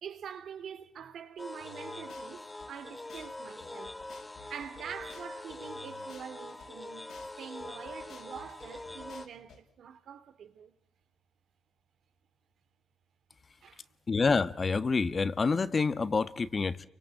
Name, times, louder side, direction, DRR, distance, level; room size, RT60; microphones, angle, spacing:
voice 1, 0.0-4.0 4.5-7.1 7.4-10.7 13.6-13.9, right 8 dB, 75° right, 2.6 m, -45 dB
sound 1, 1.4-9.3, left 2 dB, 20° left, 1.3 m, -44 dB
sound 2, 1.6-2.7 3.1-3.3 3.6-6.7 7.1-7.3 7.6-9.6, left 5 dB, 85° left, 6.3 m, -54 dB
voice 2, 14.1-16.9, left 4 dB, 40° left, 1.5 m, -27 dB
30.0 x 24.0 x 7.6 m
cardioid pair, 80°, 0 cm